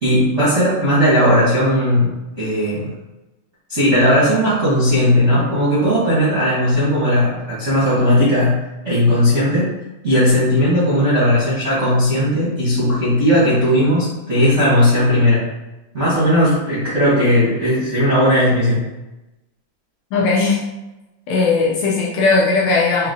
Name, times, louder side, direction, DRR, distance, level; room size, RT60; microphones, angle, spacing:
voice 1, 0.0-2.9 3.7-9.8 10.0-15.4 15.9-18.9, equal, 55° right, -11 dB, 0.7 m, -16 dB
voice 2, 20.1-20.6 21.3-23.1, left 4 dB, 75° left, -4 dB, 1.8 m, -17 dB
5.3 x 2.8 x 2.6 m, 1.0 s
omnidirectional pair, 3.5 m